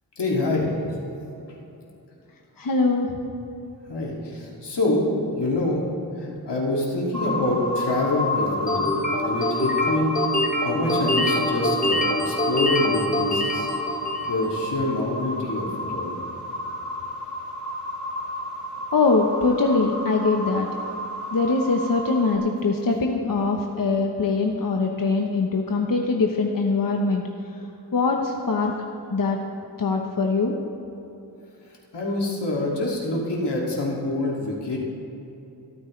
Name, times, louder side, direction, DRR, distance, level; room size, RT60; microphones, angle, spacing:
voice 1, 0.2-0.7 3.9-5.8 6.2-8.9 9.2-10.1 10.6-13.7 14.3-16.1 31.9-34.8, left 2 dB, 75° left, -3 dB, 2.5 m, -26 dB
voice 2, 2.6-3.1 18.9-20.7 21.3-27.2 27.9-28.7 29.1-29.4 29.8-30.6, left 3 dB, 55° left, 2 dB, 1.0 m, -22 dB
sound 1, 7.1-22.4, left 2 dB, 45° right, 3.1 m, -31 dB
sound 2, 8.7-14.4, left 1 dB, 20° left, 1.5 m, -25 dB
26.0 x 9.0 x 3.3 m, 2.8 s
cardioid pair, 50°, 41 cm